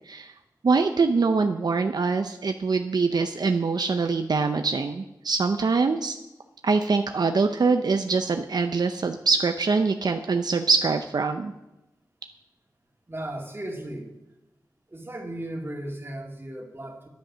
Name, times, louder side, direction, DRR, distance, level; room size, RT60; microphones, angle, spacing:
voice 1, 0.6-6.2 6.6-11.5, right 4 dB, 75° right, 6 dB, 0.7 m, -24 dB
voice 2, 13.1-14.1 14.9-17.1, right 1 dB, 35° right, 2 dB, 2.3 m, -36 dB
10.5 x 10.5 x 6.3 m, 0.95 s
wide cardioid pair, 75°, 7 cm